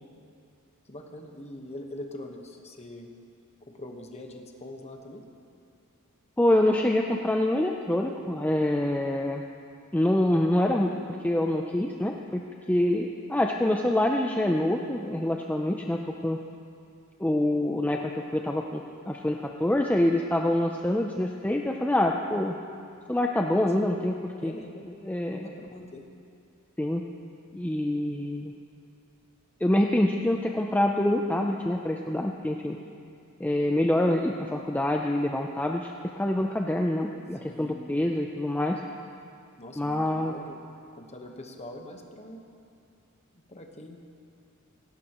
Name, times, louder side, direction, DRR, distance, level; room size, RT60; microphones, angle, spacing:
voice 1, 0.9-3.1 3.7-5.2 23.5-23.7 24.4-24.8 25.3-26.0 37.4-38.1 39.6-40.6 41.0-42.4 43.5-44.0, left 1 dB, 30° left, 3 dB, 1.2 m, -43 dB
voice 2, 6.4-9.4 9.9-10.9 11.2-12.4 12.7-16.4 17.2-22.6 23.1-24.5 24.8-25.5 26.8-27.0 27.5-28.5 29.6-32.8 33.4-35.9 36.2-38.8 39.8-40.3, left 1 dB, 5° left, 1 dB, 0.5 m, -26 dB
18.0 x 17.0 x 3.0 m, 2.4 s
head